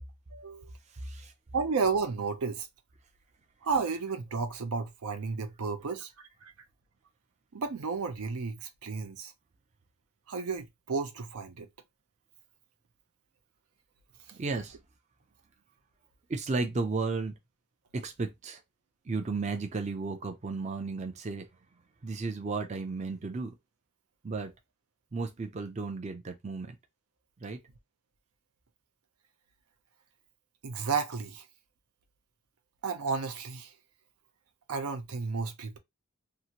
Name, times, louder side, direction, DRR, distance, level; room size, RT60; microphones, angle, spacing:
voice 1, 0.3-0.7 1.5-2.7 3.6-6.1 6.4-6.5 7.5-9.3 10.3-11.7 30.6-31.5 32.8-33.7 34.7-35.8, right 5 dB, 80° right, 0.5 m, -32 dB
voice 2, 0.9-1.3 14.3-14.8 16.3-17.3 17.9-18.6 19.1-21.5 22.0-23.6 24.2-24.5 25.1-26.8 27.4-27.6, right 3 dB, 30° right, 0.4 m, -34 dB
2.8 x 2.5 x 2.8 m
head